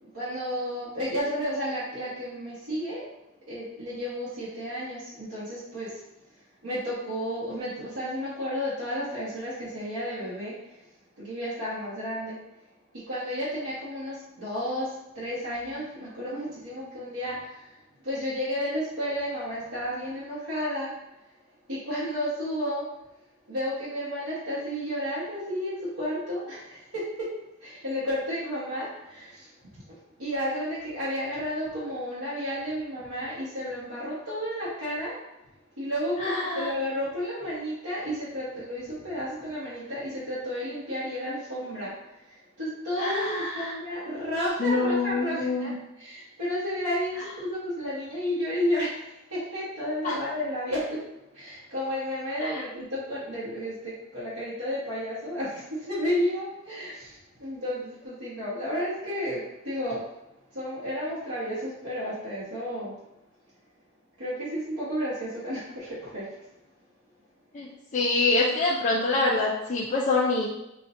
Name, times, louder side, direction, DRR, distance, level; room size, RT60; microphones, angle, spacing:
voice 1, 0.0-3.0 3.5-6.0 6.6-10.8 11.2-12.4 12.9-17.7 18.0-20.9 21.7-22.9 23.5-27.3 27.6-29.5 29.9-35.1 35.8-41.9 42.6-51.0 51.3-59.4 59.6-60.0 60.5-62.9 64.2-66.4, equal, 85° right, -11 dB, 1.4 m, -32 dB
voice 2, 36.2-36.7 43.0-43.7 44.6-45.7 50.0-50.1 52.4-52.6 67.5-70.5, left 3 dB, 35° left, -5 dB, 0.5 m, -26 dB
5.6 x 2.4 x 2.6 m, 0.88 s
head